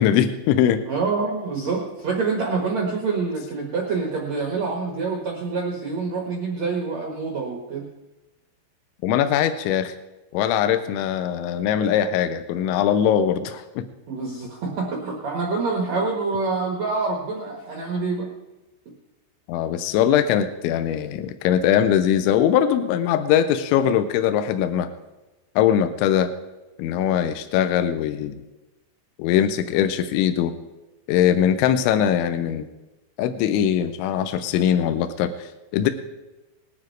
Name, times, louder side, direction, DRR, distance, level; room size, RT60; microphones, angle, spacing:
voice 1, 0.0-0.8 9.0-9.9 10.3-13.9 19.5-24.9 25.6-26.3 26.8-28.4 29.2-30.5 31.1-32.7 33.2-35.9, left 9 dB, 85° left, 9 dB, 3.0 m, -21 dB
voice 2, 0.9-7.8 14.1-18.3, right 4 dB, 80° right, 0 dB, 1.5 m, -26 dB
19.5 x 9.8 x 4.6 m, 1.1 s
omnidirectional pair, 5.6 m